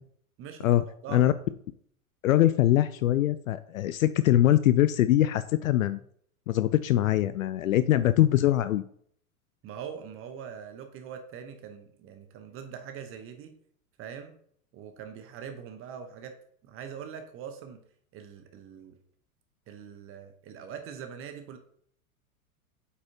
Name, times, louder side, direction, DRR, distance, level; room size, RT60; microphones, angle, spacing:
voice 1, 0.4-1.3 9.6-13.5 14.0-14.4 14.7-16.3 16.6-17.8 18.1-19.0 19.7-21.6, right 7 dB, 30° right, 6 dB, 0.9 m, -42 dB
voice 2, 2.2-6.0 6.5-8.8, left 13 dB, 70° left, 14 dB, 0.5 m, -23 dB
8.1 x 5.5 x 2.8 m, 0.64 s
figure-of-eight pair, 95°, 43 cm